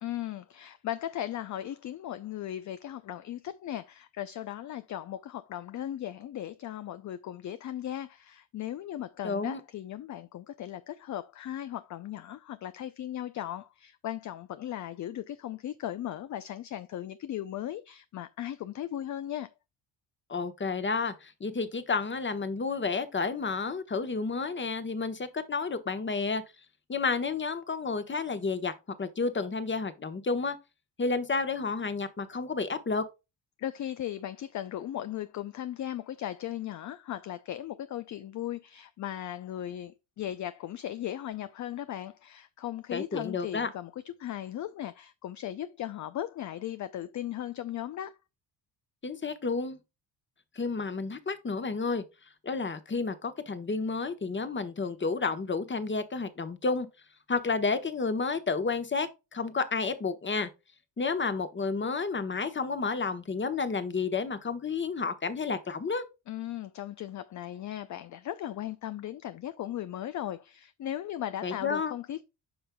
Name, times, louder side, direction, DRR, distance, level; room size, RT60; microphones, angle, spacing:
voice 1, 0.0-19.5 33.6-48.1 66.3-72.2, left 12 dB, 40° left, 0.5 m, -37 dB
voice 2, 9.2-9.6 20.3-26.4 26.9-28.7 29.0-30.6 31.0-33.0 42.9-43.7 49.0-49.8 50.5-52.0 52.4-56.9 57.3-60.5 61.0-66.0 71.4-71.9, left 4 dB, 25° left, 1.1 m, -31 dB
8.7 x 5.4 x 2.2 m
supercardioid pair, 75°, 48 cm